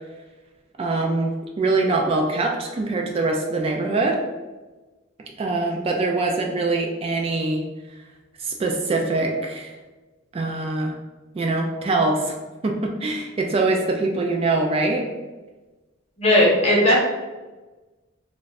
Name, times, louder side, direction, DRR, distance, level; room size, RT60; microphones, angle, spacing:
voice 1, 0.8-4.2 5.4-7.6 8.4-9.8 10.3-10.9 11.3-12.4 12.6-15.1, right 2 dB, 30° right, 1 dB, 0.3 m, -23 dB
voice 2, 16.2-17.0, left 1 dB, 35° left, -4 dB, 0.9 m, -16 dB
2.5 x 2.3 x 3.9 m, 1.2 s
head